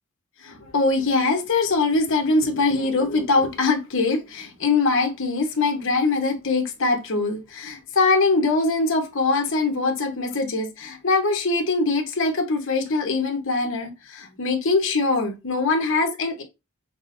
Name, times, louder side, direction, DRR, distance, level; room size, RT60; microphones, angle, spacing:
voice 1, 0.4-16.4, left 3 dB, 60° left, 0.9 m, -22 dB
5.8 x 2.1 x 2.6 m
head